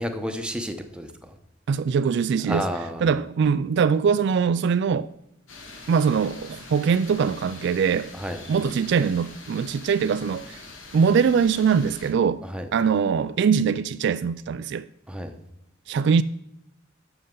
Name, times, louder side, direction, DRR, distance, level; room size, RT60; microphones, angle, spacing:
voice 1, 0.0-1.3 2.5-3.0 8.1-8.4 12.4-12.7 15.1-15.3, equal, 5° right, 0.9 m, -31 dB
voice 2, 1.7-2.6 3.0-5.1 5.9-8.1 8.5-10.6 10.9-12.4 12.7-14.9 15.9-16.2, right 6 dB, 60° right, 0.3 m, -22 dB
sound 1, 5.5-12.1, left 3 dB, 75° left, 1.8 m, -44 dB
11.5 x 7.0 x 3.8 m
head